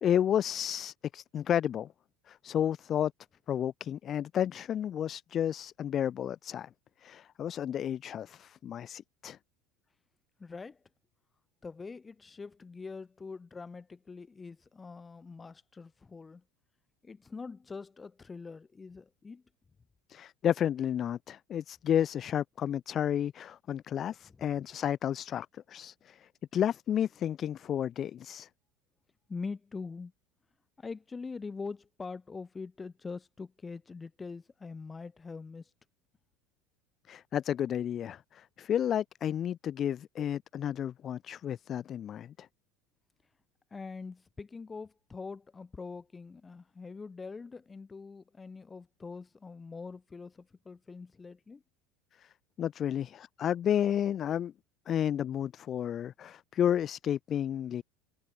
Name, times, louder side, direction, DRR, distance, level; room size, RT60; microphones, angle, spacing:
voice 1, 0.0-1.9 2.3-3.1 3.5-6.7 7.0-9.4 20.1-28.5 37.1-42.5 52.2-52.3 52.6-54.5 54.9-57.8, left 10 dB, 40° left, 1.7 m, -31 dB
voice 2, 10.4-10.8 11.6-16.4 17.0-19.4 24.4-24.5 29.3-30.1 30.8-35.7 43.7-51.6, left 4 dB, 20° left, 4.6 m, -43 dB
figure-of-eight pair, 70°, 0 cm